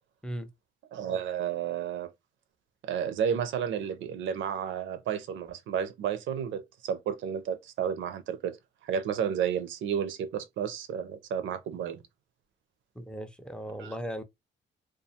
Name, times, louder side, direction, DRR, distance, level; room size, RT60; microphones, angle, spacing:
voice 1, 0.9-2.1 2.8-8.6 8.8-12.0 13.8-13.9, right 8 dB, 75° right, 0.5 m, -32 dB
voice 2, 13.0-14.2, equal, 5° left, 0.4 m, -37 dB
2.3 x 2.2 x 2.7 m
cardioid pair, 90°, 20 cm